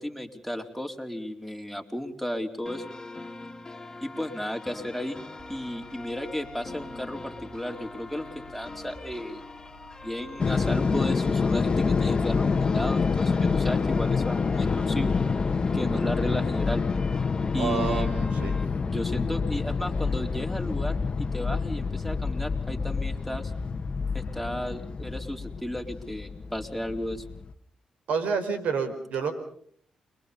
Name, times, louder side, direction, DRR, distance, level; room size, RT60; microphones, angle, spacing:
voice 1, 0.0-2.9 4.0-9.4 10.0-15.2 15.7-16.8 17.5-18.1 18.8-23.5 24.1-27.2, equal, ahead, 4 dB, 4.2 m, -34 dB
sound 1, 2.7-18.7, left 3 dB, 25° left, 2.7 m, -42 dB
sound 2, 5.4-16.9, left 1 dB, 20° right, 4.7 m, -53 dB
sound 3, 10.4-27.5, left 4 dB, 45° left, 1.5 m, -27 dB
voice 2, 17.6-18.6 28.1-29.3, right 5 dB, 80° right, 9 dB, 4.7 m, -28 dB
29.5 x 23.0 x 5.4 m, 0.62 s
supercardioid pair, 60°, 2 cm